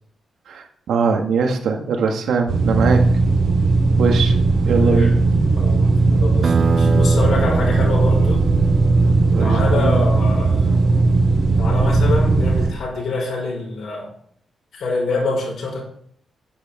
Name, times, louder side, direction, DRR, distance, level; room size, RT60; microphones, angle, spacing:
voice 1, 0.5-3.0 4.0-4.4 4.6-5.1 9.3-10.0, right 5 dB, 85° right, 3 dB, 2.0 m, -21 dB
sound 1, 2.5-12.7, right 3 dB, 65° right, 3.2 m, -17 dB
voice 2, 4.8-5.2 5.6-8.4 9.4-11.1 11.6-14.1 14.7-15.8, left 3 dB, 70° left, -2 dB, 5.8 m, -26 dB
sound 2, 6.4-11.6, right 5 dB, 40° right, 0.6 m, -27 dB
11.5 x 9.3 x 4.5 m, 0.63 s
wide cardioid pair, 170°, 0 cm